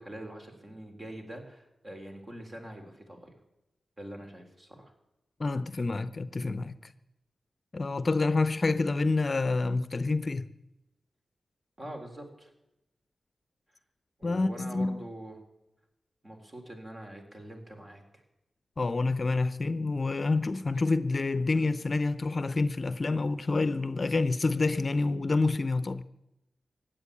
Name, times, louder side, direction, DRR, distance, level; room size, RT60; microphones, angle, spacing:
voice 1, 0.0-3.3 4.0-4.9 11.8-12.5 14.2-15.4 16.2-18.2, right 1 dB, 35° right, 3.9 m, -44 dB
voice 2, 5.4-6.7 7.7-10.5 14.2-15.0 18.8-26.0, left 3 dB, 45° left, 0.7 m, -28 dB
16.0 x 9.2 x 8.6 m
cardioid pair, 70°, 0 cm